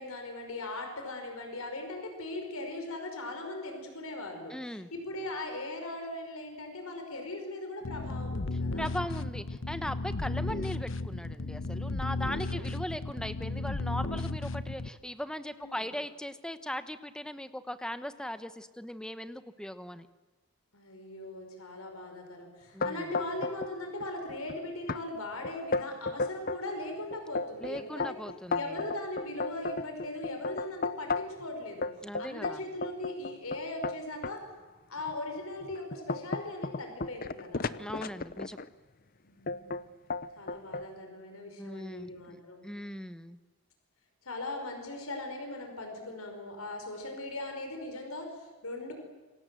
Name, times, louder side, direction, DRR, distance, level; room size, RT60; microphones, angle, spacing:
voice 1, 0.0-8.9 12.1-12.7 15.6-15.9 20.7-28.2 28.6-31.9 32.2-34.4 34.9-37.8 39.2-39.8 40.4-42.6 44.2-48.9, left 2 dB, 80° left, 4 dB, 5.4 m, -39 dB
voice 2, 4.5-4.9 8.8-20.1 22.7-23.1 27.6-28.8 32.0-32.6 37.8-38.6 41.6-43.4, equal, 5° left, 11 dB, 1.0 m, -39 dB
sound 1, 7.8-14.9, left 2 dB, 60° left, 0.9 m, -34 dB
sound 2, 22.8-23.7 24.0-24.5 24.9-25.0 25.4-26.6 27.1-31.4 31.8-34.4 35.0-35.1 35.6-38.7 39.5-39.8 40.1-40.9, left 3 dB, 40° left, 0.8 m, -34 dB
27.5 x 25.0 x 7.8 m, 1.3 s
head